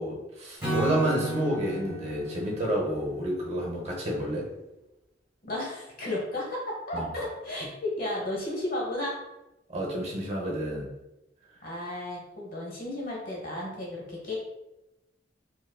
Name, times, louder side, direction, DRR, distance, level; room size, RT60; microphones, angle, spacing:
voice 1, 0.0-4.5 6.9-7.2 9.7-10.9, equal, 35° right, -2 dB, 0.9 m, -30 dB
Acoustic guitar / Strum, 0.6-3.9, right 2 dB, 10° right, 1.4 m, -34 dB
voice 2, 5.4-9.2 11.6-14.4, left 1 dB, 50° left, -3 dB, 1.0 m, -33 dB
4.9 x 2.0 x 2.3 m, 0.95 s
head